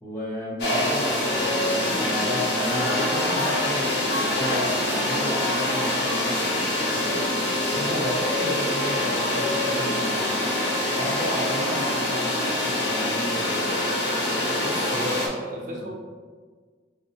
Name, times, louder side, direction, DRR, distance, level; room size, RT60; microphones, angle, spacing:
voice 1, 0.0-7.2 7.6-10.2 10.9-13.7 15.6-15.8, equal, 15° left, -7 dB, 0.8 m, -33 dB
sound 1, 0.6-15.3, left 1 dB, 65° left, 0.7 m, -25 dB
voice 2, 14.6-15.9, right 1 dB, 45° right, -2 dB, 0.5 m, -33 dB
4.9 x 2.0 x 2.7 m, 1.5 s
head